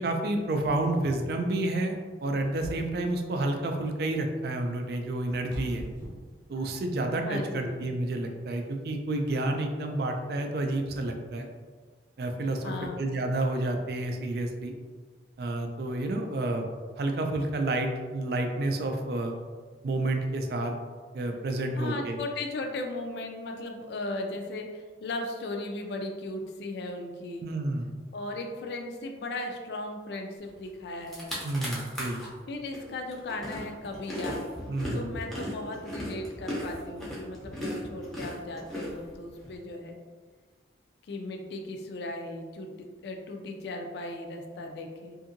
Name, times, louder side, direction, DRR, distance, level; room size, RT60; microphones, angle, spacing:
voice 1, 0.0-5.8 6.5-11.5 12.2-14.7 15.4-16.7 17.0-19.3 19.8-20.7 21.1-22.2 27.4-27.9 31.4-32.2 34.7-35.1, right 2 dB, 60° right, 4 dB, 0.3 m, -30 dB
sound 1, 2.4-3.2 4.7-7.0, equal, 85° left, 0.9 m, -42 dB
voice 2, 7.2-7.7 12.6-13.0 21.7-27.5 28.1-31.4 32.5-34.5 34.9-40.0 41.1-42.7 43.0-45.2, left 2 dB, 65° left, 3 dB, 0.3 m, -37 dB
sound 2, 30.7-30.8 31.0-32.3 32.7-39.5, equal, ahead, 0.5 m, -36 dB
2.7 x 2.6 x 2.5 m, 1.5 s
head